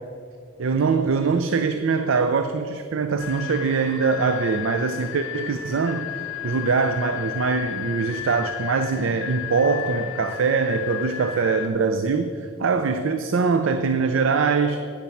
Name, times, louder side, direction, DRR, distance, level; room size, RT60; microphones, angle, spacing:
voice 1, 0.6-6.1 6.4-14.8, right 4 dB, 80° right, 9 dB, 0.4 m, -23 dB
sound 1, 3.2-11.7, left 10 dB, 85° left, 0.7 m, -33 dB
9.4 x 7.1 x 5.7 m, 2.3 s
head